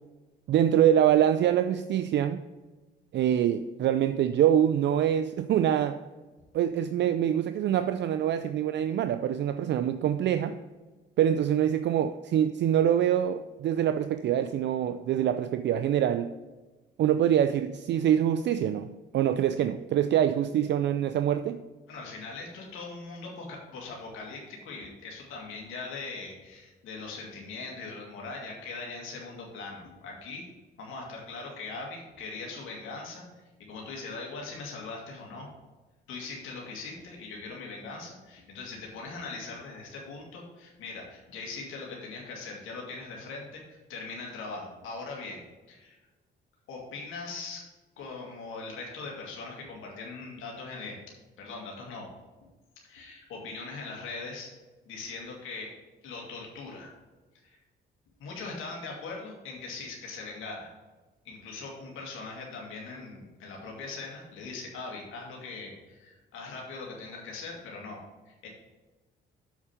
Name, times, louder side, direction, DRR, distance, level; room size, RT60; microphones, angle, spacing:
voice 1, 0.5-2.4 3.1-6.0 6.5-10.6 11.2-16.3 17.0-21.6, right 10 dB, 65° right, 10 dB, 0.4 m, -25 dB
voice 2, 21.9-30.5 30.8-35.5 36.1-46.0 46.7-47.6 48.0-52.1 52.8-54.5 54.9-55.7 56.0-56.9 57.4-57.6 58.2-60.7 61.3-68.5, left 3 dB, 85° left, -1 dB, 2.0 m, -41 dB
7.2 x 4.9 x 5.7 m, 1.2 s
cardioid pair, 90°, 20 cm